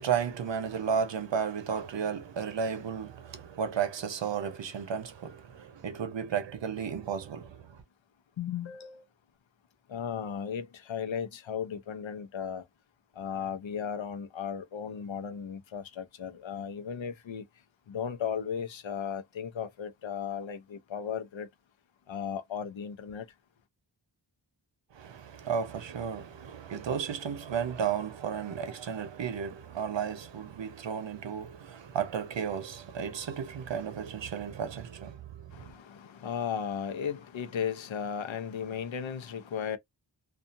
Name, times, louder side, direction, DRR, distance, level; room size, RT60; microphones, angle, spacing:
voice 1, 0.0-7.8 24.9-35.7, right 7 dB, 70° right, 0.8 m, -33 dB
voice 2, 8.4-9.0 9.9-12.6 13.2-17.4 17.9-21.5 22.1-23.3 35.5-39.8, left 7 dB, 85° left, 0.7 m, -35 dB
2.6 x 2.5 x 2.5 m
wide cardioid pair, 80°, 45 cm